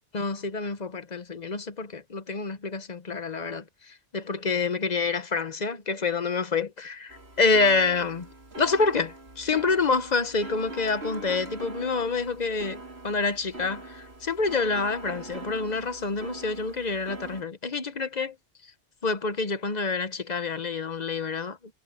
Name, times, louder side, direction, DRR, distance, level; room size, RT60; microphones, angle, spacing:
voice 1, 0.1-8.3 8.6-18.4 19.0-21.8, left 4 dB, 40° left, 1.1 m, -27 dB
sound 1, 7.1-17.4, right 2 dB, 65° right, 3.4 m, -42 dB
omnidirectional pair, 1.2 m